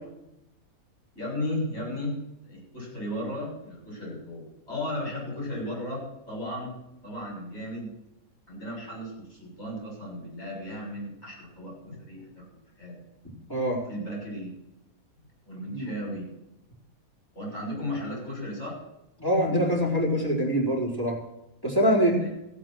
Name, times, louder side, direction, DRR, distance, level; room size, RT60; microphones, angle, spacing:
voice 1, 1.2-2.2 2.4-6.7 7.0-7.9 8.5-12.4 12.8-12.9 13.9-14.5 15.5-16.3 17.3-18.8 22.1-22.3, left 1 dB, 45° left, -3 dB, 7.1 m, -35 dB
voice 2, 19.2-21.2 21.6-22.2, equal, 15° left, -4 dB, 3.8 m, -24 dB
15.0 x 8.7 x 6.2 m, 0.88 s
omnidirectional pair, 1.6 m